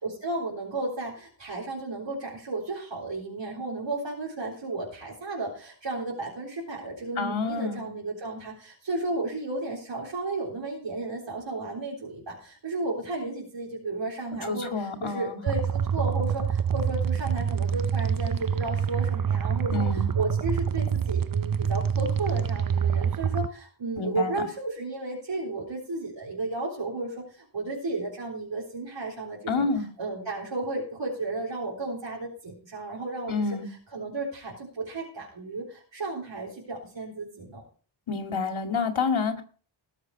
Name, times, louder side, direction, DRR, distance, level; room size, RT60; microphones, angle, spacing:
voice 1, 0.0-19.9 20.1-29.7 30.0-33.6 33.9-37.6, right 2 dB, 65° right, -3 dB, 3.9 m, -33 dB
voice 2, 7.2-7.8 14.4-15.4 19.7-20.1 24.0-24.4 29.5-29.8 33.3-33.7 38.1-39.4, left 4 dB, 75° left, 5 dB, 2.3 m, -28 dB
sound 1, 15.5-23.5, right 7 dB, 45° right, 0.7 m, -26 dB
19.0 x 6.7 x 4.8 m, 0.42 s
wide cardioid pair, 110°, 48 cm